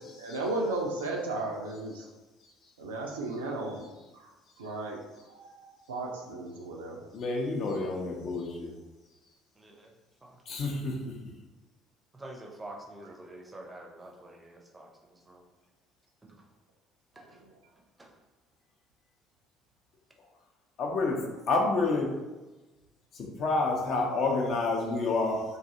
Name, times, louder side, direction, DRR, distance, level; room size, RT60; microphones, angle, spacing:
voice 1, 0.2-2.0 2.8-3.9 4.6-5.0 5.3-7.0, right 2 dB, 75° right, 0 dB, 0.4 m, -34 dB
voice 2, 7.1-8.7 10.5-11.0 20.8-21.2 21.5-22.2 23.1-25.4, left 3 dB, 50° left, 0 dB, 0.5 m, -28 dB
voice 3, 9.6-9.9 10.2-10.4 12.1-15.4 16.2-16.4 17.1-17.4 18.0-18.1, right 1 dB, 15° right, 1 dB, 0.5 m, -47 dB
2.5 x 2.3 x 2.7 m, 1.1 s
figure-of-eight pair, 55°, 0 cm